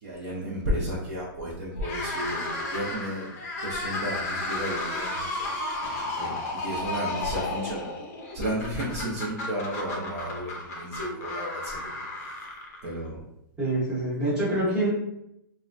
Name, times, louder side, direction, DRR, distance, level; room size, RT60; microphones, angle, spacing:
voice 1, 0.0-3.3 3.6-5.5 5.8-7.9 8.3-11.8 12.1-12.4 12.8-13.2, equal, 40° right, -5 dB, 0.6 m, -33 dB
sound 1, 1.8-13.1, left 2 dB, 40° left, 0.5 m, -33 dB
voice 2, 13.6-14.9, right 1 dB, 5° right, -9 dB, 0.8 m, -26 dB
2.9 x 2.2 x 2.5 m, 0.80 s
hypercardioid pair, 175°, 12 cm